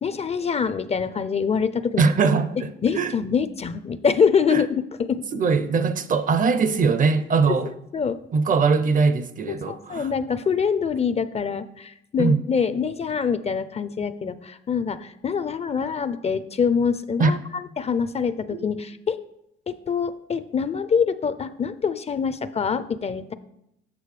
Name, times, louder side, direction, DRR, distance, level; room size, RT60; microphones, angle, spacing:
voice 1, 0.0-2.0 2.8-5.2 7.9-8.2 9.5-19.2 19.7-23.3, left 6 dB, 30° left, 0.4 m, -25 dB
voice 2, 2.0-2.7 3.0-3.1 4.5-4.6 5.3-7.7 8.3-10.1 12.2-12.4 17.2-17.3, right 4 dB, 40° right, 0.5 m, -21 dB
8.3 x 6.5 x 3.2 m
cardioid pair, 90°, 20 cm